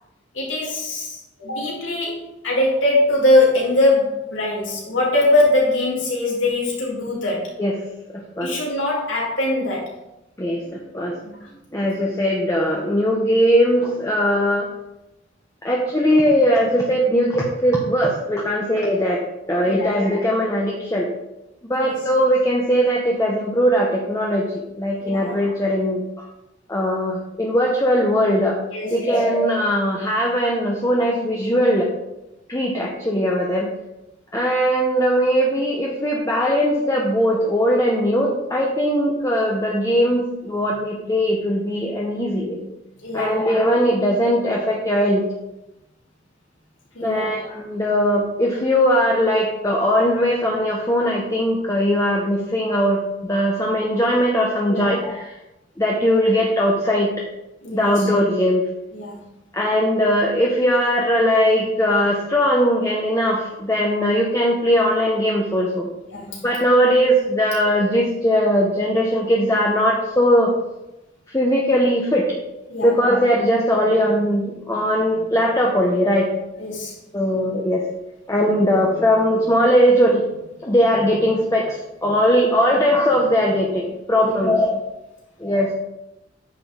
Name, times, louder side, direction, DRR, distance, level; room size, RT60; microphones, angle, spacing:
voice 1, 0.3-7.5 8.4-9.9 11.2-11.5 19.6-20.0 21.8-21.9 25.0-25.3 28.7-29.1 43.0-43.4 46.9-47.3 54.7-54.9 57.6-58.1 58.9-59.2 66.1-66.4 67.4-67.5 72.7-72.9 76.6-77.0 82.4-82.7 84.2-84.4, left 2 dB, 85° left, -4 dB, 3.3 m, -22 dB
voice 2, 8.1-8.5 10.4-11.1 11.7-14.7 15.6-19.2 19.5-21.1 21.7-26.3 26.7-28.6 28.9-31.9 32.5-33.7 34.3-42.6 43.1-45.2 47.0-55.2 55.8-57.1 57.7-58.6 59.5-65.9 66.4-70.5 71.3-72.4 72.8-76.3 77.1-77.8 78.3-84.8 85.4-85.7, equal, 15° left, -2 dB, 1.1 m, -19 dB
9.6 x 6.7 x 3.8 m, 0.91 s
head